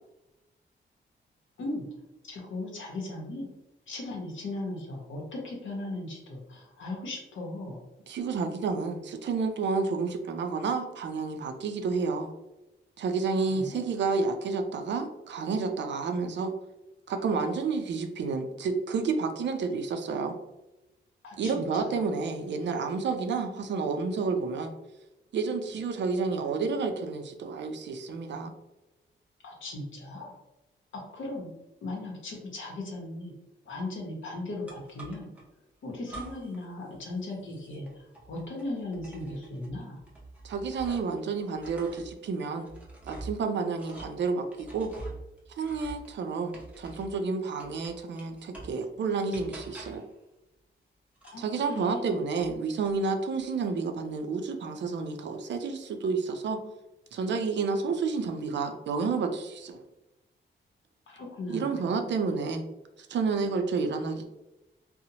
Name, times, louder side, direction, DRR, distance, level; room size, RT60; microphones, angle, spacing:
voice 1, 2.2-3.5 3.9-7.8 13.4-13.8 21.2-22.0 29.4-30.3 31.1-31.5 31.8-33.3 33.6-35.3 35.8-40.0 51.3-52.2 61.1-61.9, left 2 dB, 75° left, -1 dB, 0.7 m, -37 dB
voice 2, 8.1-12.3 13.0-16.5 17.1-20.4 21.4-24.7 25.3-28.5 40.4-42.7 43.0-44.9 45.6-50.0 51.4-56.6 57.1-59.8 61.5-62.6 63.0-64.3, right 4 dB, 65° right, 6 dB, 0.4 m, -30 dB
sound 1, 34.7-35.4 36.0-36.6 36.9-41.2 41.5-47.2 47.6-48.8 49.3-50.1 51.1-52.5 52.8-53.4, right 2 dB, 5° right, 0.6 m, -46 dB
2.8 x 2.0 x 2.7 m, 0.95 s
wide cardioid pair, 150°, 20 cm